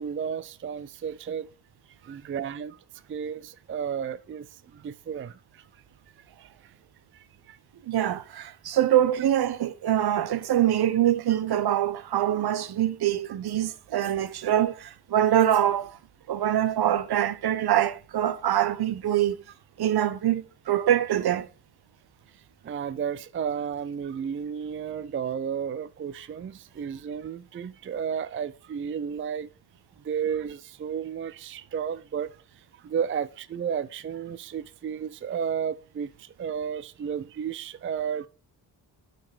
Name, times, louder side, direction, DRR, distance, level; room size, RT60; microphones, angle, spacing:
voice 1, 0.0-1.5 2.0-2.8 3.1-5.6 6.4-6.7 7.1-7.6 22.6-29.5 30.0-32.4 32.8-38.3, right 7 dB, 30° right, 0.4 m, -33 dB
voice 2, 7.9-16.0 16.3-19.4 19.8-21.5, right 11 dB, 65° right, 0.8 m, -24 dB
8.8 x 5.2 x 4.8 m
cardioid pair, 100°, 41 cm